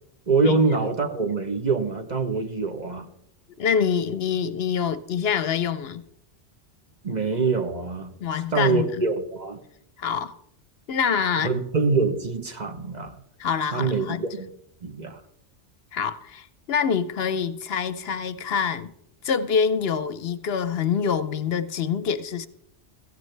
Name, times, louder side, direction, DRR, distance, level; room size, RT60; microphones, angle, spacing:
voice 1, 0.3-3.1 7.0-8.1 8.5-9.6 11.4-13.1 13.7-14.5 14.8-15.2, right 4 dB, 40° right, 1.0 m, -24 dB
voice 2, 3.6-6.0 8.2-9.0 10.0-10.3 10.9-11.6 13.4-14.2 15.9-18.9 19.2-22.5, left 7 dB, 65° left, 0.8 m, -25 dB
15.5 x 15.0 x 3.3 m
omnidirectional pair, 1.2 m